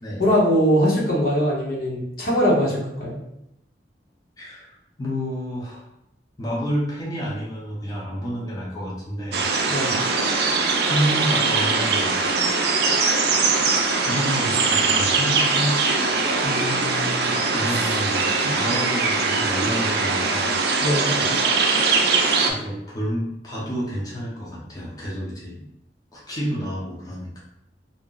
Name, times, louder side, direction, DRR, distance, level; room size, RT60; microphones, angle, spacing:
voice 1, 0.2-3.2 9.7-9.9 16.4-17.3 18.4-18.5 20.8-21.2, equal, 60° left, -4 dB, 0.9 m, -22 dB
voice 2, 4.4-5.9 6.4-9.4 10.5-12.3 14.0-15.7 17.5-20.5 22.4-25.7 26.1-27.4, equal, 20° left, -6 dB, 0.6 m, -29 dB
sound 1, 9.3-22.5, right 4 dB, 65° right, 0.4 m, -21 dB
2.6 x 2.0 x 3.7 m, 0.80 s
head